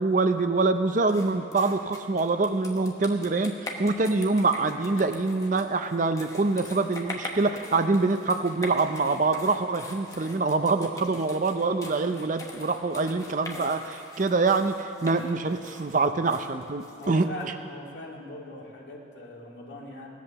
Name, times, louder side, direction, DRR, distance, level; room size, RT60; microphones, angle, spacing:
voice 1, 0.0-17.5, right 3 dB, 40° right, 8 dB, 0.5 m, -25 dB
sound 1, 1.1-17.5, left 2 dB, 15° left, 1.1 m, -42 dB
voice 2, 17.0-20.1, left 1 dB, 65° left, -2 dB, 2.2 m, -40 dB
17.0 x 8.3 x 6.9 m, 2.7 s
head